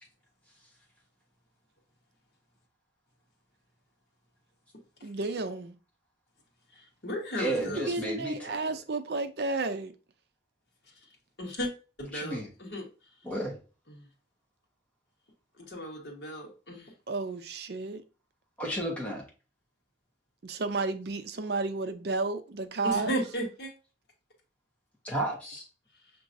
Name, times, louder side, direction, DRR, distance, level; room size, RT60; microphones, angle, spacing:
voice 1, 5.0-5.8 7.6-9.9 17.1-18.0 20.4-23.1, right 3 dB, 60° right, 0.5 m, -32 dB
voice 2, 6.7-7.9 11.4-11.7 12.0-12.9 13.9-14.1 15.6-16.9 22.8-23.7, equal, 60° left, 1.4 m, -35 dB
voice 3, 7.4-8.6 12.1-12.5 13.2-13.6 18.6-19.2 25.0-25.7, right 1 dB, 5° left, 1.2 m, -32 dB
6.0 x 3.0 x 2.6 m
head